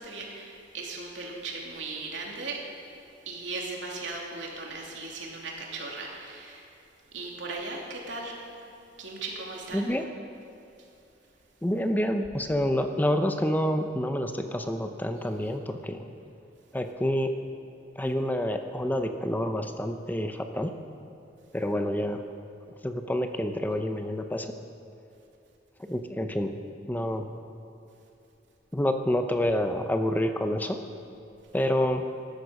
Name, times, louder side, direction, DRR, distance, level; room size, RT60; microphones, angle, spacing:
voice 1, 0.0-2.7 3.2-6.7 7.1-8.4 9.0-10.0, right 3 dB, 80° right, -1 dB, 2.9 m, -37 dB
voice 2, 9.7-10.0 11.6-16.1 16.7-17.3 18.0-20.7 21.5-22.2 22.8-24.5 25.9-26.5 26.9-27.3 28.7-30.8 31.5-32.0, equal, 10° left, 6 dB, 0.6 m, -28 dB
16.0 x 12.0 x 6.5 m, 2.8 s
head